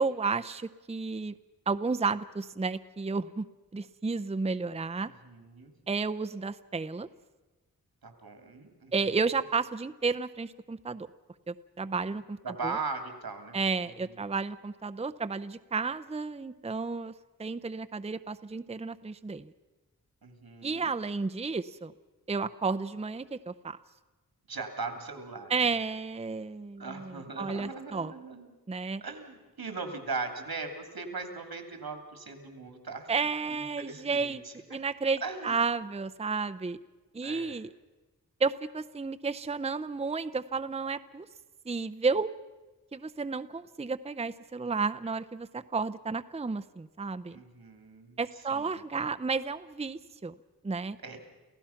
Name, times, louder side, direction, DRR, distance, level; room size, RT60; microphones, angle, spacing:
voice 1, 0.0-1.3 1.7-3.5 3.7-5.1 5.9-7.1 8.9-11.1 11.5-12.4 12.6-12.8 13.5-17.1 17.4-19.5 20.6-21.9 22.3-23.8 25.5-28.1 28.7-29.0 33.1-34.4 34.7-36.8 37.1-37.7 38.4-41.3 41.7-42.3 42.9-47.4 48.2-50.3 50.6-51.0, right 4 dB, 20° right, 10 dB, 0.6 m, -32 dB
voice 2, 5.0-5.7 8.0-9.2 12.4-13.6 14.0-14.2 20.2-20.9 24.5-25.7 26.8-28.5 29.0-33.1 33.5-34.8 35.2-35.6 37.2-37.6 47.3-48.2 48.5-48.8 51.0-51.2, right 4 dB, 90° right, 6 dB, 2.8 m, -39 dB
28.5 x 16.0 x 5.8 m, 1.2 s
wide cardioid pair, 75°, 36 cm